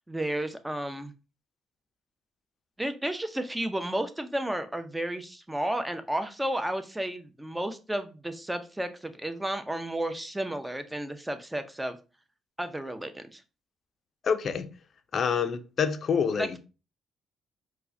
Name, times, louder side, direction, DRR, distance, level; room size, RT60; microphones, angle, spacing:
voice 1, 0.1-1.1 2.8-12.0 12.6-13.4 16.3-16.6, right 1 dB, 10° right, 0.5 m, -32 dB
voice 2, 14.2-14.7 15.1-16.6, left 6 dB, 55° left, 0.4 m, -27 dB
4.4 x 2.1 x 2.6 m
supercardioid pair, 75°, 0 cm